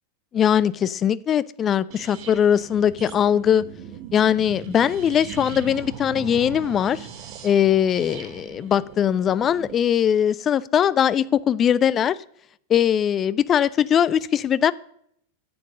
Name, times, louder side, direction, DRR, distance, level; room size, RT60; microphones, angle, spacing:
voice 1, 0.3-3.6 4.1-7.1 7.4-12.2 12.7-14.7, left 9 dB, 25° left, 19 dB, 0.4 m, -20 dB
sound 1, 1.9-9.8, right 7 dB, 45° right, 1.3 m, -39 dB
9.8 x 7.4 x 6.6 m, 0.69 s
figure-of-eight pair, 90°, 0 cm